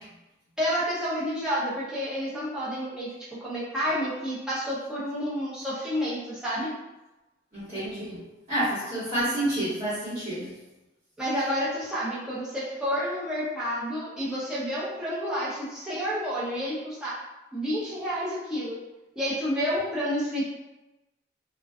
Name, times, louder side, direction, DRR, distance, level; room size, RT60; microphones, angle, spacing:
voice 1, 0.6-3.1 3.4-6.7 11.2-17.1 17.5-18.8 19.2-20.4, equal, 5° right, -9 dB, 0.6 m, -29 dB
voice 2, 7.5-8.2 8.5-10.5, right 1 dB, 45° right, -15 dB, 1.4 m, -29 dB
2.4 x 2.3 x 2.3 m, 1.0 s
head